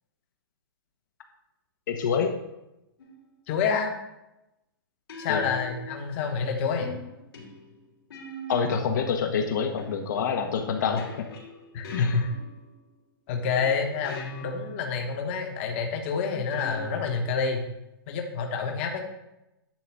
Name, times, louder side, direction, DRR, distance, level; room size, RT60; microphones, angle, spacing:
voice 1, 1.9-2.3 5.3-5.5 8.5-11.0 11.9-12.2, left 6 dB, 50° left, 3 dB, 1.1 m, -26 dB
sound 1, 3.0-3.3 5.1-6.3 6.8-8.9 9.8-12.8 13.5-14.8 16.5-17.4, left 1 dB, 75° left, 3.5 m, -43 dB
voice 2, 3.5-3.9 5.2-6.9 11.7-12.3 13.3-17.6 18.1-19.0, left 5 dB, 30° left, 3 dB, 1.2 m, -28 dB
10.5 x 3.9 x 7.6 m, 0.91 s
hypercardioid pair, 170°, 13 cm